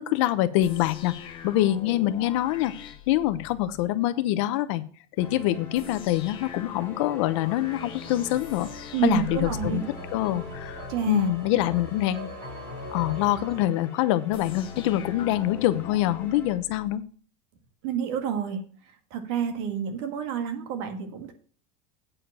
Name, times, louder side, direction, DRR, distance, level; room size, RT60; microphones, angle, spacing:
voice 1, 0.0-4.8 5.2-8.7 9.0-9.8 10.1-12.3 12.9-17.0, left 14 dB, 65° left, 14 dB, 0.8 m, -25 dB
sound 1, 0.6-3.9 5.7-11.0 14.3-17.0, left 8 dB, 30° left, 1.0 m, -42 dB
sound 2, 5.2-16.5, left 3 dB, 10° left, 2.0 m, -44 dB
sound 3, 7.4-13.6, equal, 30° right, 4.5 m, -43 dB
voice 2, 8.9-9.8 10.9-11.3 17.8-18.6 19.1-21.3, right 8 dB, 55° right, 6 dB, 1.8 m, -28 dB
8.6 x 5.0 x 7.4 m, 0.42 s
cardioid pair, 180°, 17 cm